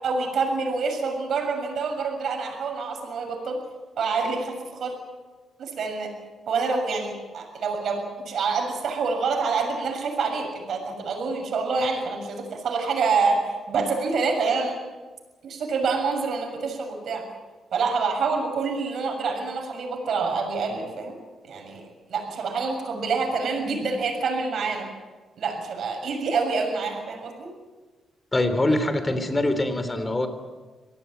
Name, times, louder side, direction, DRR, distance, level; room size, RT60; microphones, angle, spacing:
voice 1, 0.0-3.6 4.0-4.9 5.6-6.1 6.5-14.8 15.4-17.2 17.7-21.2 21.5-24.9 25.4-27.5, right 4 dB, 60° right, 3 dB, 6.9 m, -27 dB
voice 2, 28.3-30.3, left 1 dB, 20° left, 10 dB, 3.2 m, -23 dB
25.0 x 18.0 x 9.2 m, 1.3 s
cardioid pair, 125°, 0 cm